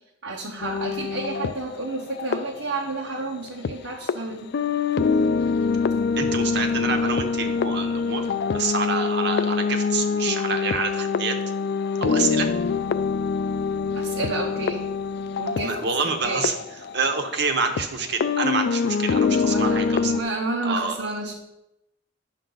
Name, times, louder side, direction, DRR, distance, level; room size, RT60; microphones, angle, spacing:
voice 1, 0.2-4.5 13.9-14.9 15.4-16.5 19.5-21.3, right 2 dB, 85° right, -2 dB, 1.0 m, -31 dB
sound 1, 0.6-3.7 4.1-4.2 4.5-17.9 18.2-20.2, left 5 dB, 60° left, 0.4 m, -25 dB
voice 2, 6.2-8.2 8.5-11.4 12.0-12.5 15.6-16.5 16.9-20.1 20.6-21.0, right 4 dB, 60° right, 6 dB, 1.1 m, -27 dB
10.0 x 6.5 x 3.9 m, 0.90 s
head